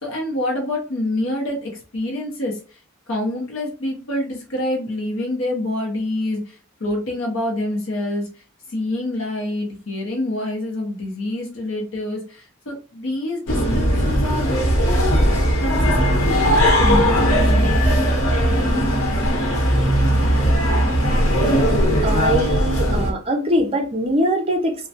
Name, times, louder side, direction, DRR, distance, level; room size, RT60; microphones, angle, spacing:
voice 1, 0.0-2.8 3.1-8.3 8.7-14.6 14.8-15.3 15.6-17.7, left 1 dB, 65° left, 0.7 m, -27 dB
sound 1, 13.5-23.1, equal, 85° left, 1.0 m, -18 dB
voice 2, 22.0-24.9, equal, 30° right, 0.5 m, -22 dB
3.1 x 2.2 x 2.7 m
head